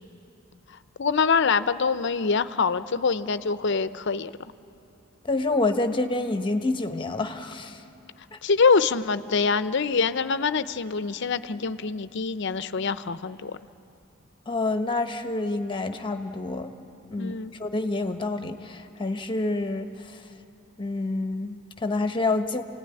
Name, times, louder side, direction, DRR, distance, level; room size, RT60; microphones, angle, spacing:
voice 1, 1.0-4.3 8.4-13.6 17.2-17.5, left 5 dB, 60° left, 13 dB, 0.6 m, -24 dB
voice 2, 5.2-7.8 14.5-16.7 17.1-20.2 20.8-22.6, left 2 dB, 25° left, 7 dB, 1.1 m, -28 dB
27.5 x 17.0 x 9.8 m, 2.9 s
head